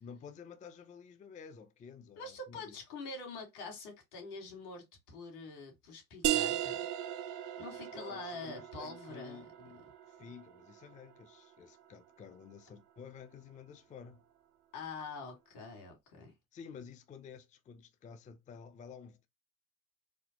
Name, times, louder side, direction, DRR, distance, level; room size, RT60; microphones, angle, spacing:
voice 1, 0.0-2.7 7.9-14.2 16.5-19.3, left 6 dB, 20° left, 0.4 m, -51 dB
voice 2, 2.2-6.9 7.6-9.5 14.7-16.3, left 3 dB, 80° left, 2.0 m, -45 dB
sound 1, 6.2-11.6, right 12 dB, 45° right, 0.6 m, -37 dB
4.2 x 2.0 x 2.9 m
hypercardioid pair, 85°, 44 cm